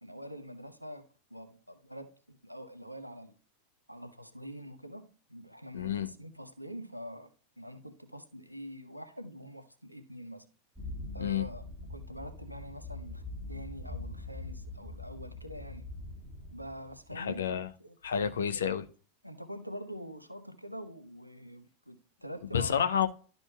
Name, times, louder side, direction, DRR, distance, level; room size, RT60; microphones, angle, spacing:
voice 1, 0.0-3.3 3.9-7.3 7.6-10.5 11.1-15.9 16.5-18.0 18.3-18.6 19.2-22.8, equal, 90° right, 0.8 m, -45 dB
voice 2, 5.7-6.1 11.2-11.4 17.1-17.7 18.0-18.8 22.5-23.1, left 8 dB, 65° left, 0.6 m, -29 dB
sound 1, 10.7-17.1, left 2 dB, 10° right, 1.4 m, -43 dB
12.0 x 5.2 x 2.3 m
figure-of-eight pair, 90°, 0 cm